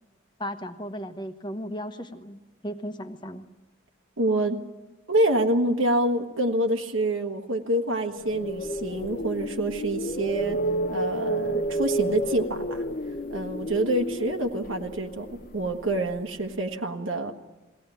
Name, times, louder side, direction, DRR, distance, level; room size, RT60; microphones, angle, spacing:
voice 1, 0.4-3.5, equal, 20° left, 8 dB, 1.1 m, -36 dB
voice 2, 4.2-4.6 5.1-10.6 10.9-12.8 13.3-17.3, right 1 dB, 85° right, 3 dB, 1.5 m, -26 dB
sound 1, 8.1-16.2, right 1 dB, 45° left, 0.8 m, -31 dB
22.0 x 17.0 x 9.2 m, 1.2 s
head